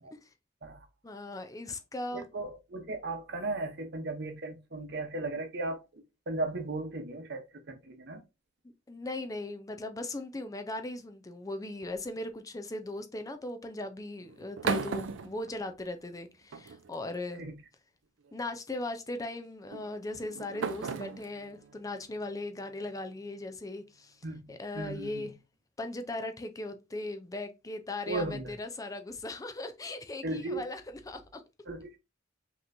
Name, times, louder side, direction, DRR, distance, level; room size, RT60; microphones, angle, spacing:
voice 1, 1.0-2.3 8.9-17.4 18.3-24.2 24.5-25.3 25.8-31.4, left 2 dB, 20° left, 0.5 m, -38 dB
voice 2, 2.1-8.2 17.4-17.6 24.2-25.2 28.1-28.5 30.2-30.7 31.7-32.0, right 2 dB, 60° right, 0.9 m, -36 dB
sound 1, 11.8-12.3 14.2-16.1 16.5-17.2 18.2-18.5 19.7-23.0, right 5 dB, 90° right, 0.5 m, -37 dB
5.3 x 3.0 x 2.6 m
head